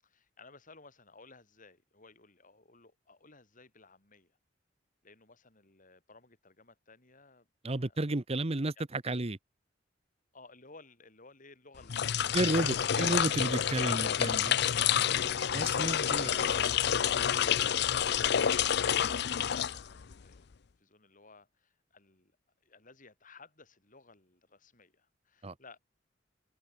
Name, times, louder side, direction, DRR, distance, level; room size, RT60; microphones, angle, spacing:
voice 1, 0.0-4.4 5.0-8.0 8.8-9.3 10.3-12.7 16.2-16.9 20.8-22.3 22.6-25.8, left 3 dB, 45° left, 7.3 m, -57 dB
voice 2, 7.6-9.4 12.3-14.5 15.2-16.3 25.4-25.5, right 2 dB, 35° right, 1.1 m, -32 dB
sound 1, 11.8-20.2, left 9 dB, 60° left, 0.6 m, -28 dB
head